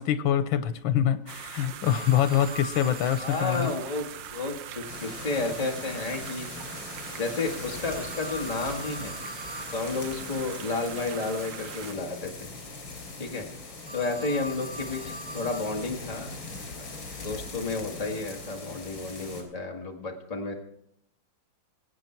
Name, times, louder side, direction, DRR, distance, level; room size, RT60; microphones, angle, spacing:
voice 1, 0.0-3.7, left 10 dB, 90° left, 11 dB, 1.6 m, -25 dB
sound 1, 1.3-11.9, right 9 dB, 75° right, 1.5 m, -41 dB
Telephone, 1.9-3.8 7.8-9.8 13.8-15.8, right 1 dB, 55° right, 2.2 m, -42 dB
voice 2, 3.2-6.5 7.2-9.1 9.7-12.5 13.2-13.5 13.9-16.4 17.2-20.5, left 3 dB, 20° left, 1 dB, 1.6 m, -32 dB
sound 2, 4.9-19.4, left 3 dB, 65° left, 3.7 m, -41 dB
22.0 x 8.6 x 4.5 m, 0.75 s
omnidirectional pair, 2.1 m